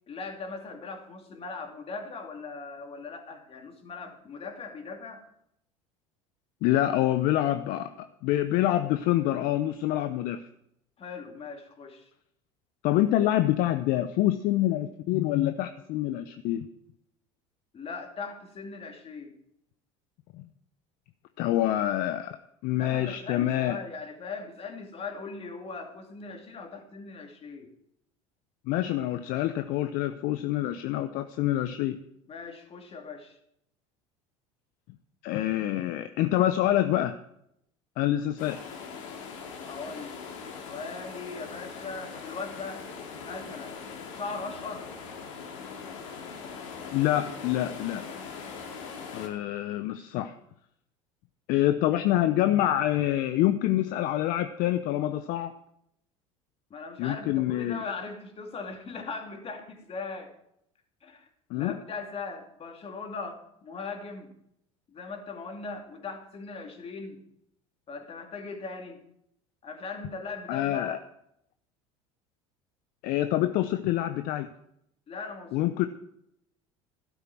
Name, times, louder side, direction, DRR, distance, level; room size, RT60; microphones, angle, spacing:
voice 1, 0.1-5.2 11.0-12.1 17.7-19.4 22.7-27.7 32.3-33.4 39.7-40.2 40.6-42.9 43.2-43.8 44.1-44.9 56.7-60.3 61.0-61.3 61.5-64.3 64.9-67.2 67.9-69.0 69.6-71.0 75.1-75.9, left 4 dB, 35° left, 3 dB, 2.6 m, -39 dB
voice 2, 6.6-10.4 12.8-16.7 20.3-20.4 21.4-22.4 22.6-23.8 28.7-32.0 35.2-37.2 38.0-38.6 46.9-48.1 49.1-50.3 51.5-55.5 57.0-57.8 61.5-61.7 70.5-71.0 73.0-74.5 75.5-75.9, left 13 dB, 60° left, 10 dB, 0.7 m, -26 dB
sound 1, 38.4-49.3, left 5 dB, 75° left, 2.4 m, -41 dB
13.0 x 12.0 x 4.5 m, 0.76 s
hypercardioid pair, 75°, 16 cm